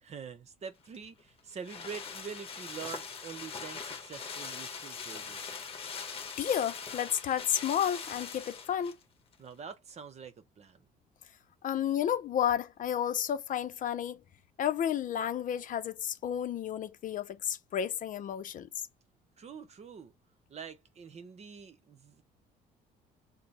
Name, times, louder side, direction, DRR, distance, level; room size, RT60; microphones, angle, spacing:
voice 1, 0.0-5.5 9.4-10.8 19.4-20.1 20.5-22.2, right 6 dB, 40° right, 0.9 m, -45 dB
sound 1, 0.9-9.0 9.3-9.4, left 5 dB, 35° left, 1.2 m, -42 dB
voice 2, 6.4-9.0 11.6-14.2 14.6-18.7, left 9 dB, 50° left, 0.7 m, -31 dB
5.1 x 2.2 x 4.2 m
cardioid pair, 110°, 17 cm